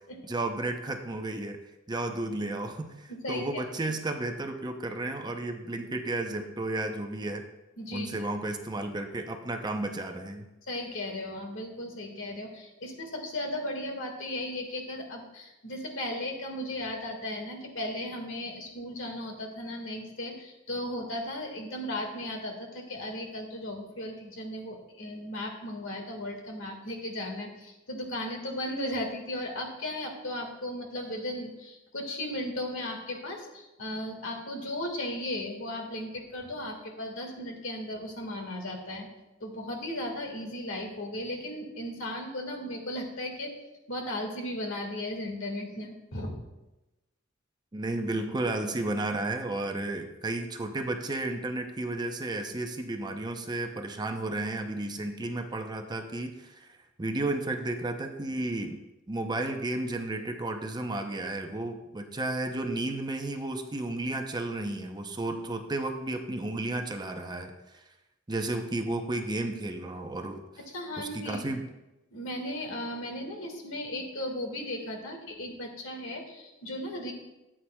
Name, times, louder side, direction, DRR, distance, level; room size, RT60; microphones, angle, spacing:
voice 1, 0.2-1.6 1.9-7.4 7.9-10.5 47.7-58.8 59.1-67.8 68.3-70.4 71.0-71.6, right 2 dB, 20° right, 5 dB, 0.6 m, -33 dB
voice 2, 3.1-3.6 7.8-8.3 10.7-39.1 39.4-43.5 43.9-46.4 70.7-71.4 72.1-77.1, left 1 dB, 70° left, 2 dB, 1.8 m, -36 dB
14.0 x 8.7 x 2.3 m, 0.99 s
head